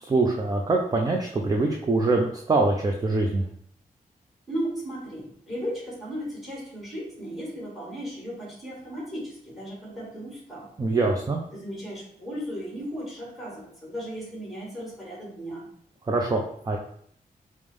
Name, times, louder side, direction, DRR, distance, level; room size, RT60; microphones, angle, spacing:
voice 1, 0.0-3.4 10.8-11.4 16.1-16.8, right 3 dB, 25° right, 1 dB, 0.4 m, -24 dB
voice 2, 4.5-10.7 11.5-15.7, equal, ahead, -4 dB, 1.6 m, -36 dB
5.1 x 2.1 x 3.2 m, 0.64 s
wide cardioid pair, 115°, 15 cm